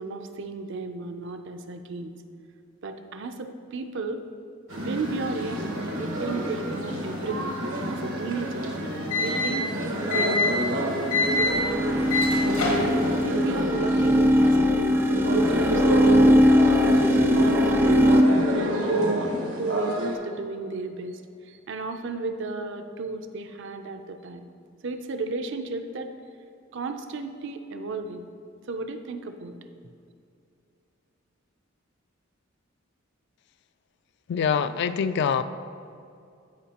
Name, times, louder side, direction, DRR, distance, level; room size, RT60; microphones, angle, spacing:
voice 1, 0.0-2.1 2.8-4.2 4.7-8.7 9.2-9.7 10.1-11.0 11.4-11.6 12.2-13.0 13.2-18.2 18.5-19.3 19.6-24.4 24.8-26.1 26.7-28.3 28.7-29.6, right 3 dB, 65° right, 7 dB, 0.5 m, -34 dB
sound 1, 4.7-13.2, left 2 dB, 80° left, 1.4 m, -30 dB
sound 2, 4.7-20.2, equal, 85° right, 1.3 m, -28 dB
sound 3, 11.2-18.2, equal, 10° right, 0.4 m, -21 dB
voice 2, 34.3-35.4, left 6 dB, 55° left, 12 dB, 0.3 m, -24 dB
13.5 x 4.9 x 2.9 m, 2.5 s
head